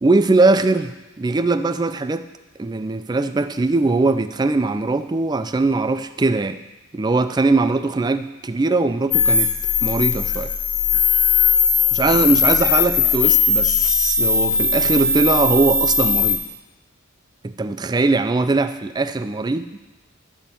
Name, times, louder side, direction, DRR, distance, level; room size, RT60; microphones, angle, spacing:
voice 1, 0.0-2.3 2.6-6.6 6.9-9.5 9.8-10.5 11.9-16.4 17.4-19.7, right 3 dB, 20° right, 11 dB, 0.3 m, -20 dB
sound 1, 9.1-16.4, left 5 dB, 45° left, 1.1 m, -18 dB
12.0 x 4.3 x 6.8 m, 1.1 s
head